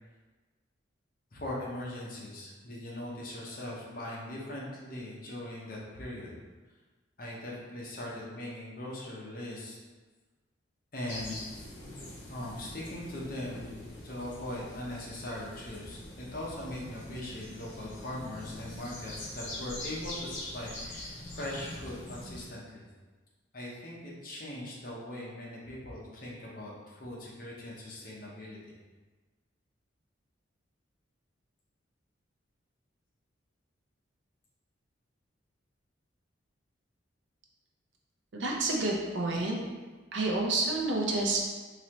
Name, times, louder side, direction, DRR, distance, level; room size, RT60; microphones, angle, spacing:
voice 1, 1.3-6.3 7.2-9.8 10.9-11.4 11.8-12.0 12.3-13.7 14.0-22.8 23.5-28.7, left 1 dB, 45° left, -4 dB, 0.8 m, -40 dB
sound 1, 11.1-22.4, left 1 dB, 75° left, 0.9 m, -44 dB
voice 2, 38.3-39.6 40.1-41.4, right 2 dB, 70° right, -1 dB, 0.6 m, -29 dB
3.9 x 2.8 x 3.0 m, 1.3 s
head